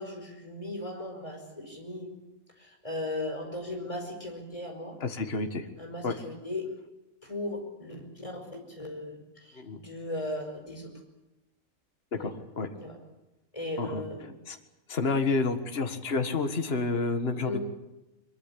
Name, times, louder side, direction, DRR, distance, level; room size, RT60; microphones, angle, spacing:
voice 1, 0.0-2.1 2.6-5.0 5.8-6.7 7.2-10.9 12.2-12.3 12.7-13.0 13.5-14.3 17.4-17.6, left 1 dB, 25° left, 3 dB, 5.3 m, -37 dB
voice 2, 5.0-5.7 6.0-6.2 9.6-9.8 12.2-12.7 13.8-14.0 14.5-14.6 14.9-17.6, left 3 dB, 45° left, 7 dB, 1.9 m, -29 dB
22.5 x 22.5 x 8.5 m, 0.99 s
omnidirectional pair, 1.4 m